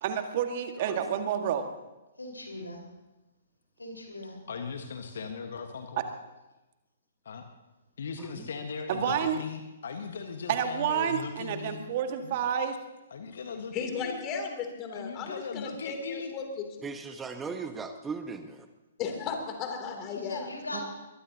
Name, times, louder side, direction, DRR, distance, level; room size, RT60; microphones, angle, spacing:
voice 1, 0.0-1.7 6.0-6.1 8.9-9.4 10.5-12.8 20.7-20.8, right 8 dB, 45° right, 6 dB, 1.8 m, -29 dB
voice 2, 2.2-2.8 3.8-4.4 20.1-20.8, left 2 dB, 85° left, 1 dB, 4.8 m, -40 dB
voice 3, 4.5-6.0 7.2-7.5 8.0-11.9 12.2-12.5 13.1-14.2 14.9-16.3, left 5 dB, 60° left, 5 dB, 1.5 m, -38 dB
voice 4, 13.7-16.9 19.0-20.5, left 5 dB, 30° left, 4 dB, 3.0 m, -35 dB
voice 5, 16.8-18.7, right 4 dB, 10° right, 7 dB, 1.1 m, -38 dB
23.0 x 21.0 x 2.9 m, 1.1 s
figure-of-eight pair, 120°, 0 cm